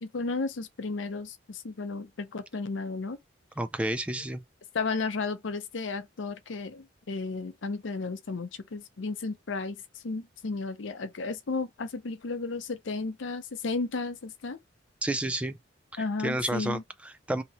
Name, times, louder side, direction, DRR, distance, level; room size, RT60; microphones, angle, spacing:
voice 1, 0.0-3.2 4.7-14.6 16.0-16.8, left 3 dB, 75° left, 0.6 m, -33 dB
voice 2, 3.6-4.4 15.0-15.6 15.9-17.4, right 1 dB, 5° right, 0.3 m, -31 dB
2.9 x 2.7 x 4.1 m
head